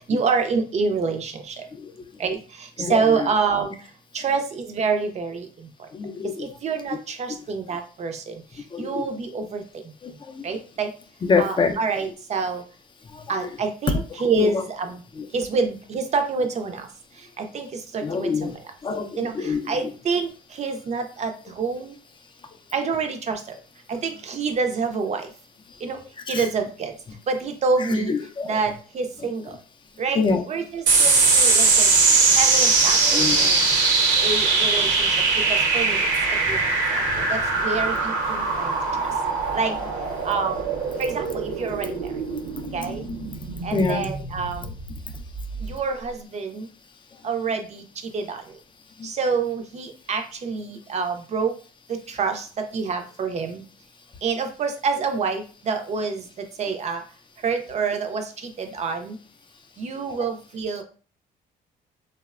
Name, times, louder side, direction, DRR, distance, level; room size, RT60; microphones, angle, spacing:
voice 1, 0.0-1.7 2.2-3.7 4.1-5.5 6.4-8.3 8.8-9.6 10.4-10.9 11.4-12.6 13.3-15.0 15.3-16.9 17.4-18.6 19.1-21.9 22.7-23.4 23.9-25.3 25.8-26.0 26.3-26.9 27.3-28.1 28.4-29.6 30.0-30.2 30.5-31.9 32.3-33.7 34.2-35.2 35.5-36.6 36.9-39.1 39.5-39.7 40.2-40.7 41.0-42.1 42.7-43.0 43.6-44.7 45.6-46.7 47.2-47.8 48.1-48.4 49.0-51.5 51.9-53.6 54.2-57.0 57.4-59.2 59.8-60.8, right 4 dB, 40° right, 6 dB, 0.4 m, -27 dB
voice 2, 5.9-6.4 8.7-9.0 10.2-10.5 11.2-11.7 13.1-13.5 14.4-14.5 15.2-15.3 18.0-18.5 18.8-19.6 26.3-26.4 27.8-28.6 30.2-30.4 33.0-33.5 43.7-44.1 49.0-49.1, left 5 dB, 25° left, 6 dB, 0.4 m, -25 dB
sound 1, 30.9-45.7, right 4 dB, 80° right, 0.8 m, -21 dB
2.9 x 2.1 x 2.3 m, 0.38 s
cardioid pair, 95°, 18 cm